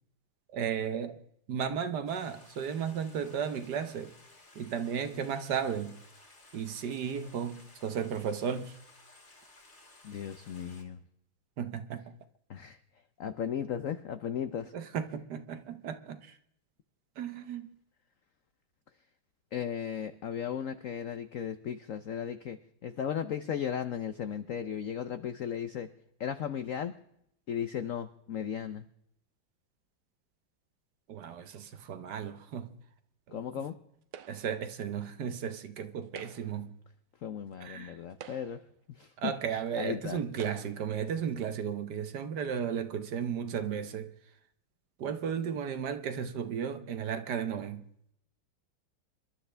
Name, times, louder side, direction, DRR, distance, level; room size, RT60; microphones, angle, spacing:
voice 1, 0.5-1.2 1.5-4.1 4.5-6.0 6.5-8.8 11.6-12.2 14.7-16.4 17.2-17.7 31.1-32.8 33.3-33.6 34.3-36.7 37.6-38.0 39.2-44.1 45.0-47.8, right 7 dB, 60° right, 1.3 m, -34 dB
Stream, 2.1-10.8, left 2 dB, 35° left, 3.0 m, -57 dB
voice 2, 10.0-11.0 12.5-12.8 13.2-14.7 19.5-25.9 26.2-27.0 27.5-28.8 33.3-33.8 37.2-38.6 39.0-39.3 39.8-40.2, left 8 dB, 80° left, 0.7 m, -36 dB
sound 1, 34.1-34.7 36.0-36.7 37.5-37.6 38.1-38.8 39.7-39.8 40.3-40.9, right 9 dB, 85° right, 1.8 m, -49 dB
26.5 x 12.0 x 3.3 m
omnidirectional pair, 2.2 m